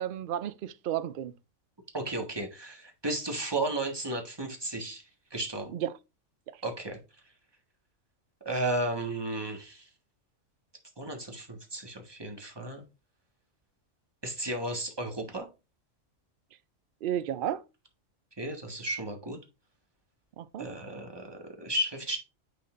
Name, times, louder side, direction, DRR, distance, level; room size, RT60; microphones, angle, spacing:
voice 1, 0.0-1.3 5.7-5.9 17.0-17.6 20.4-20.7, right 11 dB, 60° right, 0.5 m, -32 dB
voice 2, 1.9-5.0 5.3-5.7 6.6-7.0 8.4-9.9 11.0-12.8 14.2-15.5 18.4-19.4 20.6-22.2, right 1 dB, 20° right, 1.5 m, -34 dB
9.5 x 4.1 x 2.5 m
omnidirectional pair, 1.4 m